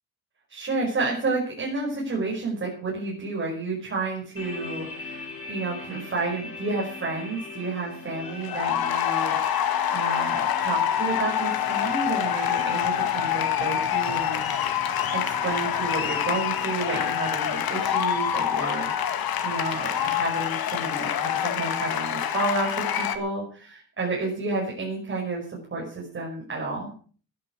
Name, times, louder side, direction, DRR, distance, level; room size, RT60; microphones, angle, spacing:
voice 1, 0.5-14.8 15.1-26.9, right 3 dB, 35° right, -3 dB, 5.4 m, -31 dB
sound 1, 4.4-18.9, left 3 dB, 40° left, 5.2 m, -42 dB
sound 2, 8.2-23.2, left 9 dB, 75° left, 1.9 m, -26 dB
14.5 x 10.5 x 6.3 m, 0.42 s
wide cardioid pair, 180°, 36 cm